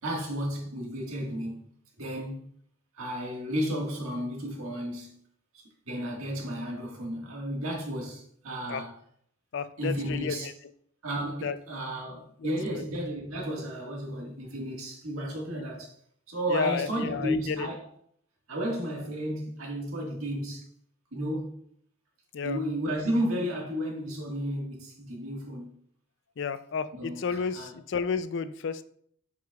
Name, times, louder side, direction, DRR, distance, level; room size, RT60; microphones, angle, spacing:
voice 1, 0.0-1.6 2.0-2.4 2.9-5.2 5.5-8.9 9.8-10.5 11.0-15.9 16.3-17.8 18.5-20.6 21.1-21.5 22.4-25.7 26.9-27.7, equal, 85° right, 1.7 m, -33 dB
voice 2, 9.5-10.5 11.4-11.6 12.4-12.8 16.5-17.7 22.3-22.6 26.4-28.8, left 6 dB, 55° left, 0.4 m, -32 dB
7.6 x 5.4 x 2.3 m
head